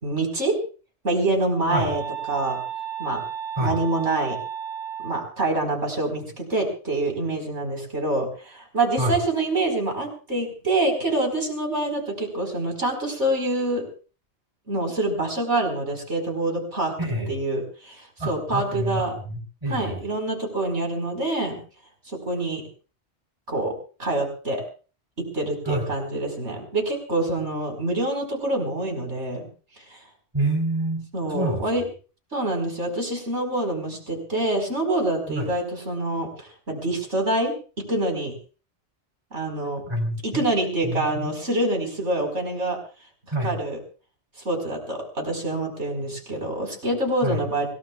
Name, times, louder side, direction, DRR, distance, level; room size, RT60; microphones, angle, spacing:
voice 1, 0.0-0.5 1.0-2.0 2.3-2.6 3.0-3.2 3.6-4.4 5.0-13.9 14.7-16.9 17.3-19.1 19.7-21.6 22.1-22.6 23.5-23.7 24.0-24.6 25.2-29.5 29.9-30.0 31.1-31.8 32.3-37.5 37.9-38.3 39.3-39.8 40.2-42.8 43.4-43.8 44.4-47.7, right 2 dB, 75° right, 2 dB, 5.0 m, -26 dB
sound 1, 1.7-5.3, right 8 dB, ahead, 6.8 m, -33 dB
voice 2, 17.0-17.3 18.2-20.0 25.7-25.9 30.3-31.6 35.3-35.5 39.8-40.4 40.8-41.3 43.3-43.6 47.2-47.4, right 1 dB, 25° right, 2 dB, 4.2 m, -27 dB
26.0 x 18.5 x 2.4 m, 0.38 s
omnidirectional pair, 1.2 m